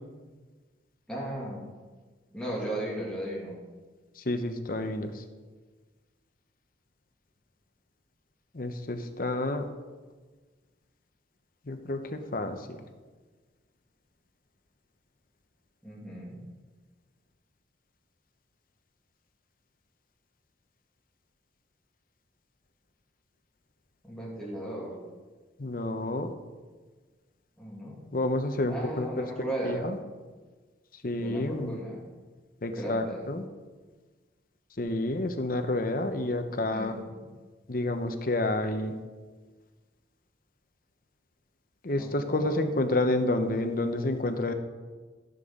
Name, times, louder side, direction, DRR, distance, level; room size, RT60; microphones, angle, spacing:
voice 1, 1.1-1.6 2.3-3.6 15.8-16.4 24.0-24.9 27.6-28.0 28.7-29.9 31.2-32.0 32.7-33.2 36.7-37.2 42.0-42.6, right 1 dB, 5° left, -6 dB, 2.4 m, -36 dB
voice 2, 4.2-5.2 8.5-9.6 11.7-12.6 25.6-26.3 28.1-29.3 29.6-30.0 31.0-31.8 32.6-33.4 34.8-37.0 37.7-39.0 41.8-44.5, left 2 dB, 50° left, 7 dB, 0.8 m, -29 dB
15.0 x 7.0 x 3.7 m, 1.4 s
head